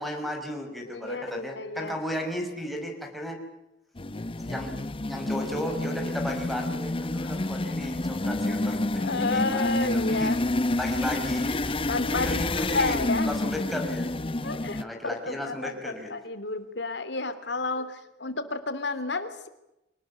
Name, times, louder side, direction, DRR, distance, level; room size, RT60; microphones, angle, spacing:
voice 1, 0.0-3.4 4.4-4.8 5.1-10.4 10.7-11.8 12.1-13.0 13.2-14.1 14.8-16.1, equal, ahead, 1 dB, 5.3 m, -35 dB
voice 2, 0.9-1.9 8.9-10.4 11.9-13.3 14.4-19.5, left 3 dB, 75° left, 11 dB, 3.2 m, -31 dB
sound 1, 4.0-14.8, left 2 dB, 30° left, 0.8 m, -29 dB
25.0 x 19.5 x 9.5 m, 0.90 s
head